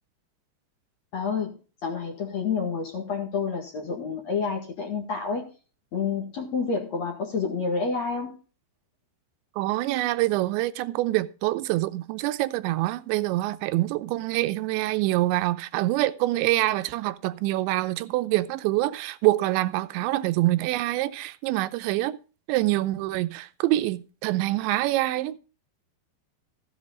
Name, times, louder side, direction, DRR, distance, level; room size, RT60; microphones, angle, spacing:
voice 1, 1.1-5.5 5.9-8.4, left 5 dB, 50° left, 2.3 m, -29 dB
voice 2, 9.6-22.2 22.5-25.4, right 17 dB, 85° right, 3.0 m, -25 dB
15.0 x 8.1 x 3.8 m
omnidirectional pair, 5.2 m